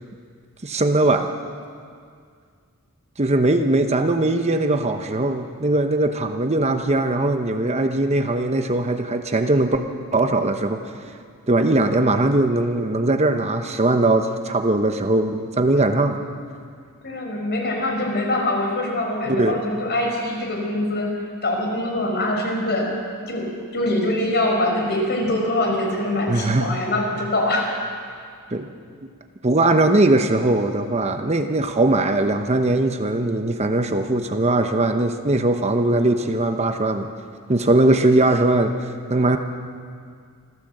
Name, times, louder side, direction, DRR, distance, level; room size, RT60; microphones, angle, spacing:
voice 1, 0.6-1.3 3.2-9.8 10.1-10.8 11.5-16.2 19.3-19.6 26.3-26.8 28.5-28.7 29.4-37.1 37.5-39.4, right 2 dB, 30° right, 6 dB, 0.9 m, -20 dB
voice 2, 17.0-21.1 21.4-22.9 23.3-27.7, left 1 dB, 50° left, 1 dB, 5.0 m, -23 dB
26.5 x 14.5 x 7.9 m, 2.1 s
head